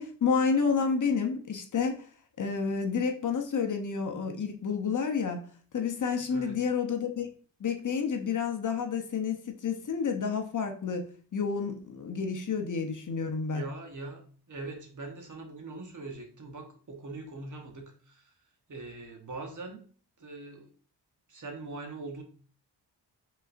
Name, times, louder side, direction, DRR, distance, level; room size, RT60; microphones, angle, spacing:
voice 1, 0.0-2.1 2.4-5.4 5.7-7.3 7.6-13.6, left 5 dB, 45° left, 0.8 m, -30 dB
voice 2, 13.5-18.3 18.7-19.9 20.2-20.7 21.3-22.2, right 3 dB, 45° right, 1.1 m, -42 dB
5.3 x 4.0 x 2.5 m
wide cardioid pair, 95°, 43 cm